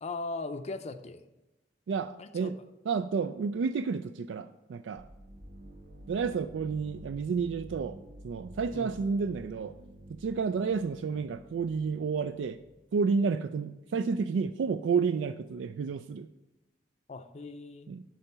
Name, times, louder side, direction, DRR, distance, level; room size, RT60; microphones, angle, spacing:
voice 1, 0.0-1.3 2.2-2.5 8.7-8.9 17.1-17.9, left 3 dB, 35° left, 8 dB, 0.5 m, -39 dB
voice 2, 1.9-2.5 2.9-5.0 6.1-8.0 8.2-9.7 10.1-12.6 12.9-16.3 17.9-18.0, right 5 dB, 85° right, 11 dB, 0.3 m, -30 dB
sound 1, 5.0-12.7, right 1 dB, 60° right, 1.1 m, -49 dB
11.5 x 3.9 x 5.5 m, 0.99 s
head